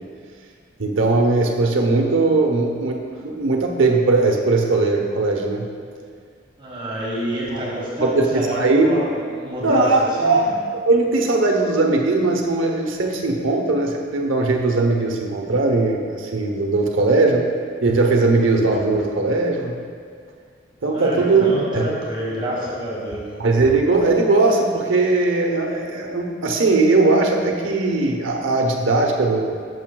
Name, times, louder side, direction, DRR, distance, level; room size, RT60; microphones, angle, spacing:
voice 1, 0.8-5.7 7.5-7.6 8.0-8.9 9.6-10.6 10.9-17.5 17.8-19.8 20.8-21.4 21.7-21.9 23.4-29.5, right 3 dB, 85° right, 1 dB, 0.8 m, -19 dB
voice 2, 6.6-9.9 10.2-10.4 20.9-23.4, right 1 dB, 25° right, -5 dB, 1.3 m, -28 dB
10.5 x 6.7 x 2.3 m, 2.1 s
head